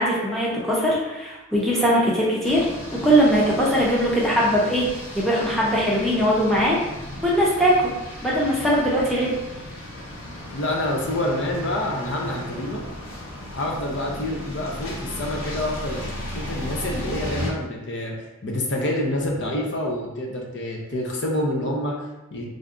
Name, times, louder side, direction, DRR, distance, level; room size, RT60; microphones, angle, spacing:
voice 1, 0.0-2.7 3.0-4.9 5.1-6.8 7.2-7.9 8.2-9.3, equal, ahead, -6 dB, 0.7 m, -20 dB
Bike and Car Passing in Rain, 2.4-17.5, left 1 dB, 85° left, 0.9 m, -35 dB
voice 2, 10.5-12.8 13.5-18.1 18.4-22.4, left 1 dB, 60° left, 0 dB, 0.6 m, -27 dB
3.4 x 2.6 x 3.7 m, 1.0 s
head